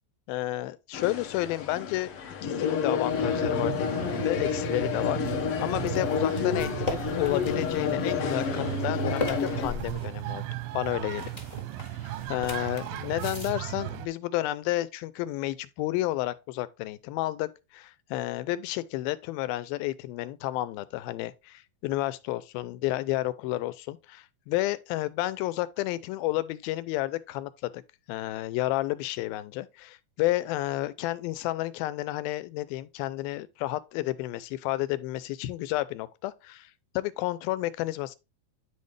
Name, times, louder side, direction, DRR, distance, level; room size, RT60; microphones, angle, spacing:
voice 1, 0.3-2.1 2.4-10.4 10.7-11.3 12.3-27.8 28.1-36.7 37.0-38.2, left 16 dB, 90° left, 2.5 m, -31 dB
sound 1, 0.9-9.7, left 7 dB, 65° left, 1.4 m, -30 dB
sound 2, 3.1-14.1, right 14 dB, 85° right, 2.4 m, -35 dB
sound 3, 5.2-13.5, left 3 dB, 30° left, 0.7 m, -39 dB
10.0 x 4.3 x 3.2 m
omnidirectional pair, 4.1 m